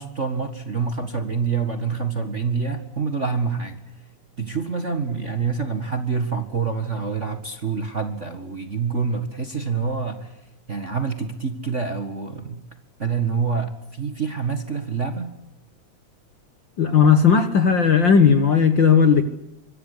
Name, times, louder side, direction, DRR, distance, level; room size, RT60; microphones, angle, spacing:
voice 1, 0.0-3.8 4.4-10.4 10.7-12.6 13.0-15.3, right 5 dB, 30° right, 7 dB, 1.5 m, -26 dB
voice 2, 16.8-19.2, left 6 dB, 50° left, 10 dB, 1.6 m, -16 dB
25.0 x 23.5 x 8.4 m, 0.84 s
omnidirectional pair, 3.4 m